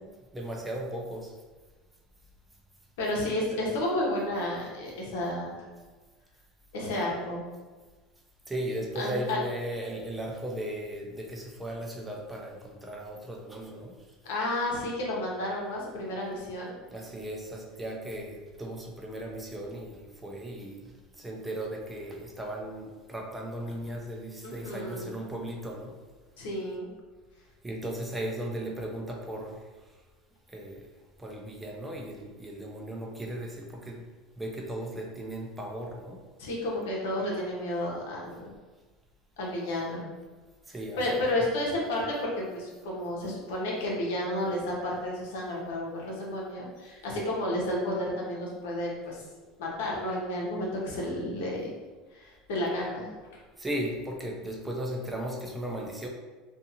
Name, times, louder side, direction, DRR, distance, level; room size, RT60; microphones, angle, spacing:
voice 1, 0.3-1.3 8.5-13.9 16.9-20.8 21.2-25.9 27.6-29.6 30.5-30.8 31.2-34.0 34.4-36.2 40.7-41.0 53.6-56.1, right 1 dB, 10° right, 0 dB, 0.4 m, -36 dB
voice 2, 3.0-5.6 6.7-7.4 8.9-9.4 14.2-16.7 24.4-25.1 26.4-26.9 36.4-38.5 39.4-40.0 41.0-49.2 49.6-51.7 52.1-53.1, left 1 dB, 85° left, -3 dB, 0.8 m, -31 dB
2.5 x 2.5 x 2.7 m, 1.3 s
supercardioid pair, 125°, 0 cm